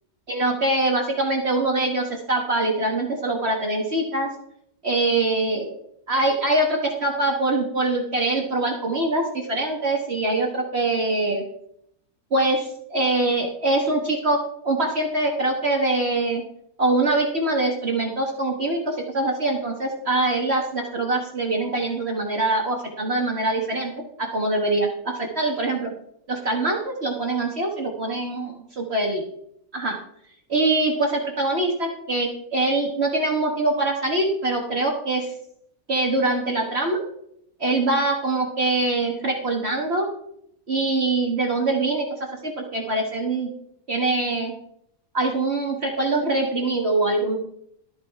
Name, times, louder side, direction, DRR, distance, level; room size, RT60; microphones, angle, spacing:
voice 1, 0.3-4.3 4.8-5.7 6.1-11.4 12.3-14.4 14.6-16.4 16.8-23.9 24.2-25.9 26.3-29.2 29.7-30.0 30.5-35.3 35.9-37.0 37.6-40.1 40.7-42.0 42.4-43.5 43.9-44.5 45.1-47.4, right 2 dB, 45° right, 1 dB, 1.6 m, -23 dB
13.0 x 7.6 x 4.6 m, 0.74 s
omnidirectional pair, 1.6 m